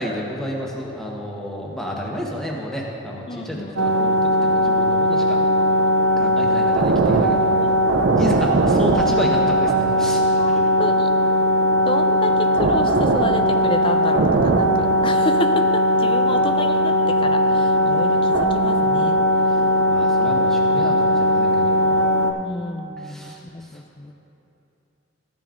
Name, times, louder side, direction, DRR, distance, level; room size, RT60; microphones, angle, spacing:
voice 1, 0.0-5.4 6.2-7.5 8.2-10.4 19.9-22.0 23.0-23.7, equal, 5° left, -3 dB, 1.0 m, -31 dB
voice 2, 1.9-2.2 3.3-3.8 7.6-7.9 10.4-11.1 11.8-19.2 22.3-24.1, left 2 dB, 25° left, 6 dB, 0.3 m, -30 dB
sound 1, 3.8-22.3, equal, 75° right, 0.6 m, -18 dB
13.5 x 9.0 x 2.5 m, 2.8 s
head